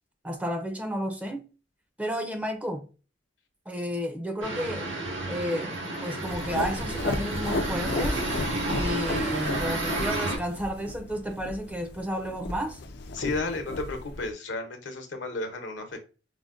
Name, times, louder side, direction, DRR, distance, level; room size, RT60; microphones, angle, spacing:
voice 1, 0.2-1.4 2.0-2.9 3.7-4.9 5.3-5.7 6.0-8.2 8.7-12.8, equal, 10° right, 0.5 m, -32 dB
sound 1, 4.4-10.4, right 2 dB, 90° right, 1.7 m, -31 dB
sound 2, 6.3-14.3, left 2 dB, 60° left, 0.4 m, -34 dB
voice 2, 13.1-16.0, left 3 dB, 80° left, 0.9 m, -32 dB
4.9 x 2.1 x 2.4 m
head